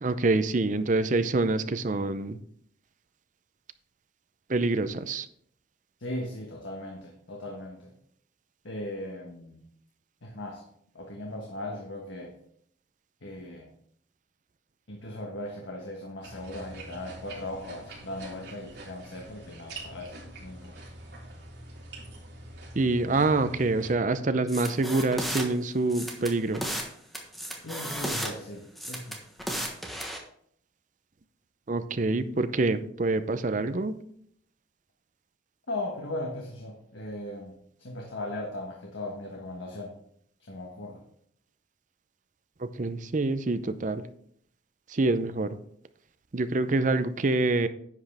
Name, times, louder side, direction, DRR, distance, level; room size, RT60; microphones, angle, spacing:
voice 1, 0.0-2.4 4.5-5.3 22.7-26.7 31.7-34.0 42.6-44.1 44.9-45.6 46.3-47.7, right 2 dB, 40° right, 11 dB, 0.6 m, -26 dB
voice 2, 6.0-7.9 8.6-9.6 10.2-10.6 10.9-12.3 13.2-13.7 14.9-20.1 20.4-20.7 27.6-29.2 35.7-39.9 40.4-41.0, left 1 dB, 90° left, 1 dB, 1.5 m, -38 dB
sound 1, 16.2-23.9, right 2 dB, 60° right, 3.6 m, -45 dB
sound 2, 24.5-25.4 25.9-26.9 27.1-28.3 28.8-30.2, equal, ahead, 1.3 m, -34 dB
10.5 x 7.9 x 3.5 m, 0.66 s
head